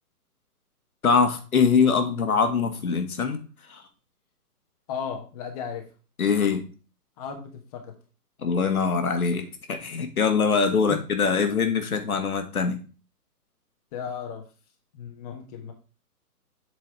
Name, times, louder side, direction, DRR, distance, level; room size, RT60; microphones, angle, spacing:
voice 1, 1.0-3.4 3.7-3.8 6.2-6.7 8.4-12.8, left 5 dB, 65° left, 6 dB, 1.7 m, -23 dB
voice 2, 4.9-5.9 7.2-8.0 10.9-11.0 13.9-14.4 14.9-15.7, left 7 dB, 25° left, 4 dB, 1.1 m, -35 dB
7.8 x 4.6 x 4.6 m, 0.35 s
figure-of-eight pair, 135°, 47 cm